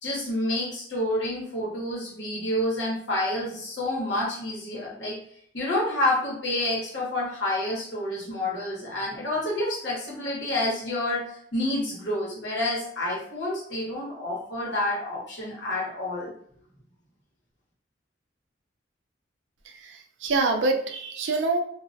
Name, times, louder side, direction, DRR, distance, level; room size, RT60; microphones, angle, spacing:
voice 1, 0.0-5.2 5.5-16.3, left 1 dB, 75° left, -5 dB, 1.0 m, -28 dB
voice 2, 19.7-21.6, right 3 dB, 85° right, 5 dB, 0.4 m, -26 dB
2.3 x 2.1 x 2.6 m, 0.63 s
head